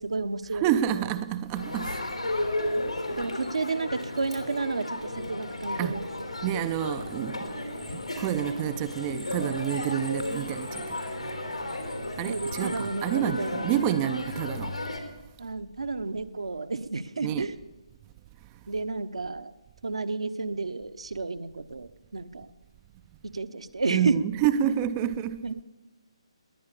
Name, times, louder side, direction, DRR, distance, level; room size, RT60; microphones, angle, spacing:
voice 1, 0.0-0.6 0.9-1.0 3.2-6.1 12.2-13.7 14.0-14.1 15.4-17.6 18.7-19.5 19.8-22.5 23.2-24.2 24.6-24.7 25.4-25.6, right 3 dB, 65° right, 1.0 m, -31 dB
voice 2, 0.5-2.0 2.8-2.9 5.8-6.0 6.4-11.0 11.2-11.4 12.2-14.8 17.2-17.5 23.9-25.5, right 10 dB, 20° right, 0.4 m, -29 dB
Crowd, 1.5-15.0, left 1 dB, 90° left, 3.4 m, -34 dB
20.0 x 9.6 x 6.8 m
figure-of-eight pair, 145°, 3 cm